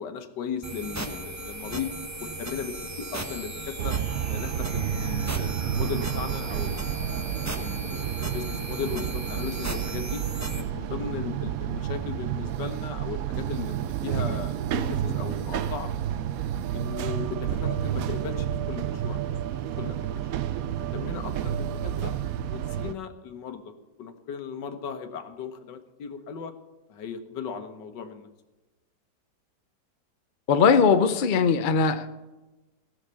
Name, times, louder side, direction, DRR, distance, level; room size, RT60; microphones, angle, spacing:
voice 1, 0.0-1.9 2.2-4.0 4.3-6.9 7.6-10.2 10.6-15.9 16.7-19.3 19.8-20.3 20.8-22.1 22.5-26.5 26.9-28.3, left 6 dB, 80° left, 8 dB, 1.6 m, -37 dB
sound 1, 0.6-10.6, right 2 dB, 10° right, 0.8 m, -36 dB
sound 2, 3.8-22.9, right 10 dB, 70° right, 0.9 m, -30 dB
voice 2, 30.5-32.1, left 5 dB, 60° left, 9 dB, 0.5 m, -20 dB
15.5 x 6.5 x 6.8 m, 1.1 s
omnidirectional pair, 1.9 m